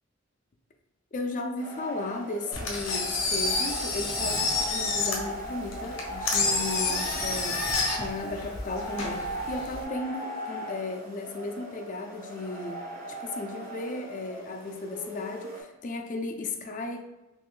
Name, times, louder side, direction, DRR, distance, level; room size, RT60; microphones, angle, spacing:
voice 1, 1.1-17.0, left 2 dB, 40° left, 5 dB, 0.4 m, -35 dB
sound 1, 1.6-15.6, equal, 45° right, 1.2 m, -38 dB
Engine, 2.5-9.8, left 3 dB, 80° left, 0.8 m, -29 dB
3.7 x 3.0 x 2.4 m, 1.0 s
head